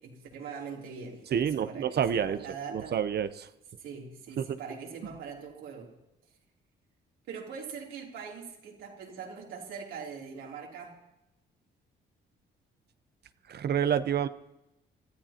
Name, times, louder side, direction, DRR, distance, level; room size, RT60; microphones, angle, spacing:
voice 1, 0.0-3.0 3.8-6.0 7.3-10.9, right 6 dB, 85° right, -2 dB, 3.1 m, -42 dB
voice 2, 1.3-2.4 2.7-3.5 4.4-4.6 13.5-14.3, right 8 dB, 55° right, 12 dB, 0.7 m, -28 dB
25.5 x 13.5 x 2.9 m, 0.90 s
cardioid pair, 90°, 20 cm